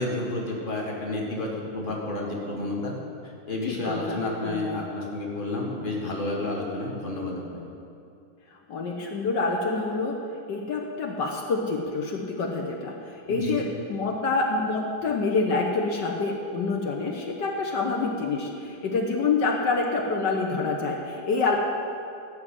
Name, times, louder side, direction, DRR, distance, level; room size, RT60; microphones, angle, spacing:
voice 1, 0.0-3.0 3.5-7.6 13.3-13.6, left 2 dB, 30° left, -1 dB, 2.0 m, -30 dB
voice 2, 3.7-4.8 8.7-10.2 10.5-13.6 13.9-21.6, left 3 dB, 70° left, 0 dB, 1.7 m, -27 dB
15.5 x 6.2 x 9.0 m, 2.5 s
omnidirectional pair, 2.0 m